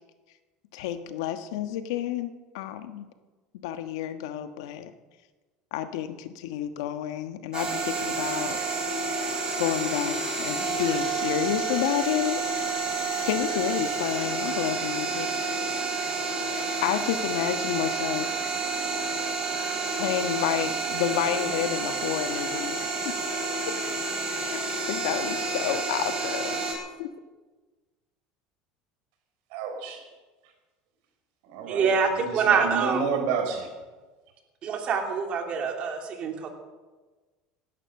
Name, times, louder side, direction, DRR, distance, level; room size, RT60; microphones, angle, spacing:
voice 1, 0.7-3.1 3.5-4.9 5.7-8.6 9.6-12.4 13.0-15.3 16.8-18.3 19.4-19.6 20.0-23.1 24.5-24.6 24.9-26.6 27.0-27.1, left 10 dB, 85° left, 9 dB, 1.3 m, -30 dB
sound 1, 7.5-26.7, right 3 dB, 30° right, 4.8 m, -29 dB
voice 2, 29.5-30.1 31.5-31.9 32.2-33.7, right 5 dB, 75° right, 4 dB, 4.3 m, -30 dB
voice 3, 31.7-33.0 34.6-36.5, right 6 dB, 45° right, 3 dB, 3.0 m, -25 dB
18.0 x 12.0 x 6.6 m, 1.3 s
supercardioid pair, 115°, 3 cm